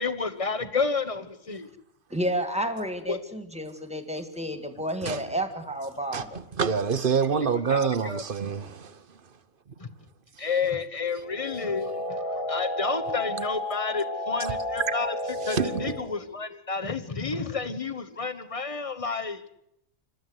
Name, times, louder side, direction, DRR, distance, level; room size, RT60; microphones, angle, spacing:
voice 1, 0.0-1.7 3.1-3.2 7.7-8.2 9.8-9.9 10.4-14.5 14.9-15.1 15.4-19.4, left 4 dB, 30° left, 1.2 m, -30 dB
voice 2, 2.1-6.4, right 1 dB, 5° right, 1.8 m, -31 dB
voice 3, 6.1-9.2 10.4-10.5 15.4-16.1, right 6 dB, 50° right, 1.0 m, -27 dB
sound 1, 11.2-16.2, left 1 dB, 60° left, 4.1 m, -32 dB
26.5 x 13.0 x 8.0 m
omnidirectional pair, 1.2 m